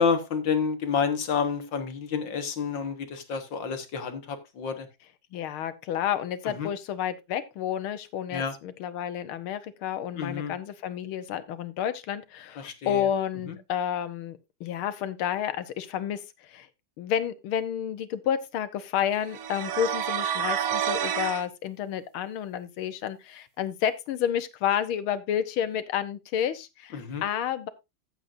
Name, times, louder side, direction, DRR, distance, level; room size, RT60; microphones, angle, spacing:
voice 1, 0.0-4.9 6.6-6.7 8.3-8.5 10.1-10.5 12.6-13.1 13.5-13.6 26.9-27.2, left 6 dB, 65° left, 2.1 m, -29 dB
voice 2, 5.3-16.7 17.0-27.7, left 9 dB, 85° left, 1.8 m, -30 dB
sound 1, 19.3-21.4, right 9 dB, 60° right, 1.1 m, -29 dB
14.5 x 7.9 x 2.6 m
omnidirectional pair, 2.3 m